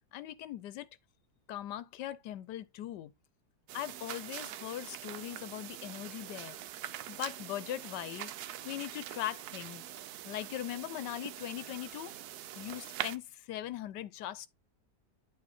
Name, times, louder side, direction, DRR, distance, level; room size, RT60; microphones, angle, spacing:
voice 1, 0.1-0.9 1.5-3.1 3.7-6.6 7.1-8.3 8.6-9.8 10.2-12.1 12.6-14.5, left 12 dB, 80° left, 1.3 m, -40 dB
sound 1, 3.7-13.2, right 12 dB, 75° right, 1.0 m, -43 dB
8.6 x 3.1 x 4.3 m
omnidirectional pair, 1.8 m